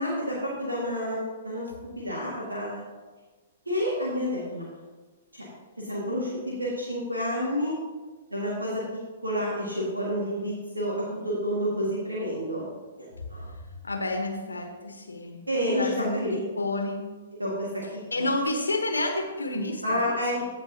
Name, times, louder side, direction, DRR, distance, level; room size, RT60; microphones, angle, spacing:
voice 1, 0.0-1.7 2.0-2.8 3.7-4.7 5.3-5.5 5.8-7.7 8.3-12.6 13.0-13.5 15.5-16.4 17.4-18.3 19.8-20.4, equal, 85° right, -5 dB, 2.0 m, -29 dB
voice 2, 13.8-15.4 15.8-16.2 16.6-17.1 18.1-20.2, left 2 dB, 75° left, 3 dB, 1.3 m, -29 dB
16.0 x 5.3 x 2.9 m, 1.3 s
figure-of-eight pair, 115°, 0 cm